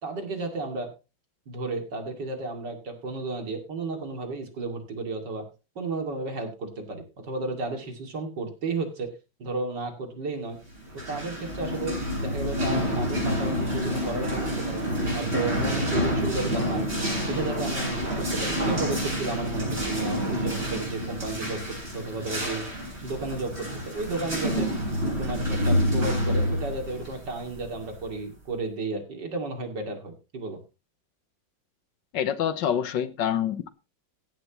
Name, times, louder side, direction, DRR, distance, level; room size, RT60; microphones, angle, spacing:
voice 1, 0.0-0.9 1.5-5.4 5.8-9.1 9.4-10.6 10.9-14.8 15.1-16.9 17.2-22.6 23.0-24.7 25.2-30.6, right 3 dB, 65° right, 3.1 m, -33 dB
sound 1, 10.8-28.2, equal, 35° right, 8.4 m, -28 dB
voice 2, 32.1-33.7, left 9 dB, 75° left, 1.6 m, -26 dB
15.5 x 11.0 x 3.0 m
omnidirectional pair, 2.0 m